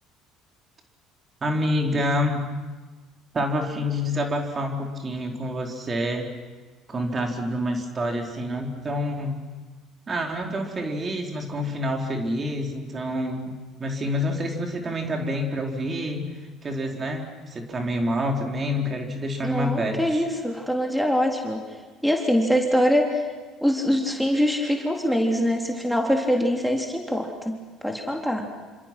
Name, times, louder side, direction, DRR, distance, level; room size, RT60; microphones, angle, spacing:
voice 1, 1.4-2.5 3.3-6.3 6.9-9.4 10.1-16.3 16.6-20.2, equal, 35° right, 2 dB, 4.2 m, -27 dB
voice 2, 19.4-21.6 22.0-23.2 23.6-28.5, equal, ahead, 2 dB, 3.6 m, -23 dB
28.0 x 26.0 x 6.2 m, 1.3 s
hypercardioid pair, 65°, 0 cm